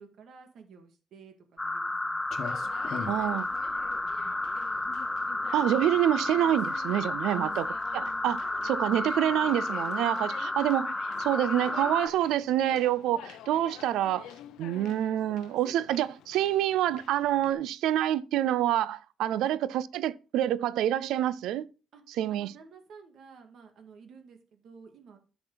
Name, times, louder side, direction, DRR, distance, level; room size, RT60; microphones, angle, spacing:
voice 1, 0.0-2.2 2.6-4.9 7.3-7.7 14.7-15.0 19.4-19.6 21.9-22.0 22.3-25.2, right 6 dB, 70° right, 1.9 m, -52 dB
sound 1, 1.6-12.1, left 2 dB, 15° left, 0.6 m, -32 dB
Clock, 2.2-9.7, left 6 dB, 65° left, 1.2 m, -45 dB
Conversation, 2.3-17.5, left 10 dB, 90° left, 0.6 m, -48 dB
voice 2, 3.1-3.5 5.5-7.7 7.9-10.9 11.2-14.3 14.6-21.7 22.2-22.5, right 12 dB, 90° right, 0.4 m, -27 dB
10.0 x 5.9 x 3.9 m
cardioid pair, 90°, 0 cm